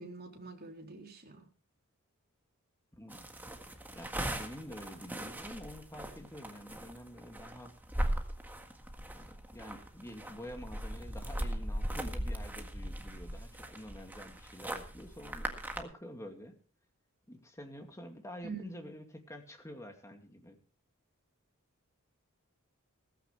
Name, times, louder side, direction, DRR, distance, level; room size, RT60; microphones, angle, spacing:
voice 1, 0.0-1.4 18.4-18.8, right 4 dB, 45° right, 1 dB, 3.7 m, -45 dB
voice 2, 2.9-3.3 3.9-7.7 9.1-16.6 17.3-20.6, equal, 15° left, 4 dB, 2.4 m, -48 dB
sound 1, 3.1-15.8, right 1 dB, 10° right, 1.7 m, -39 dB
16.5 x 15.0 x 3.3 m, 0.39 s
head